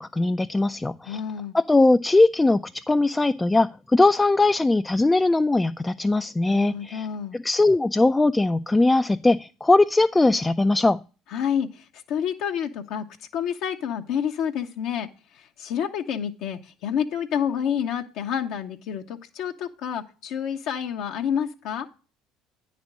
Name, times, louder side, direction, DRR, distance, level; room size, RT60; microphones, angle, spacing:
voice 1, 0.0-1.2 1.5-7.1 7.3-11.0, left 2 dB, 15° left, 0.3 m, -20 dB
voice 2, 1.1-1.5 6.5-7.4 11.3-13.0 13.3-15.1 15.3-21.9, left 8 dB, 65° left, 0.7 m, -29 dB
9.5 x 4.2 x 6.0 m
hypercardioid pair, 70°, 0 cm